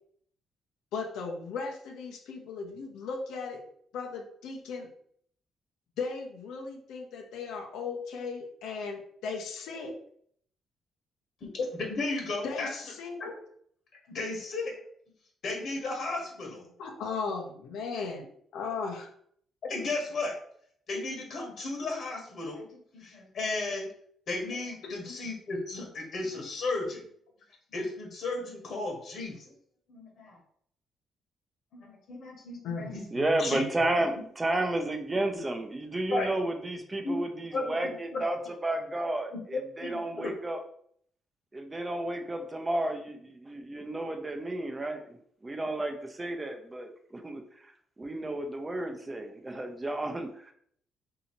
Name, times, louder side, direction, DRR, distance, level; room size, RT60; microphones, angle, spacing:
voice 1, 0.9-3.6 3.9-4.9 6.0-9.9 12.4-13.3 16.8-18.2 18.5-19.1 24.8-24.9 32.6-33.7, left 4 dB, 85° left, 1 dB, 0.7 m, -37 dB
voice 2, 11.4-12.8 13.2-13.3 14.1-14.7 15.4-16.7 19.7-20.3 20.9-22.7 22.9-23.9 24.3-27.0 27.7-29.5 29.9-30.4 31.7-33.1 33.4-33.6 36.1-36.3 37.0-37.2 37.5-37.7 38.1-38.2 39.3-40.3, left 2 dB, 60° left, 1 dB, 1.1 m, -34 dB
voice 3, 33.1-38.4 38.6-40.6 41.5-45.2 45.4-47.7 48.0-50.5, right 1 dB, 20° right, 5 dB, 0.6 m, -32 dB
2.8 x 2.7 x 4.3 m, 0.63 s
cardioid pair, 90°, 0 cm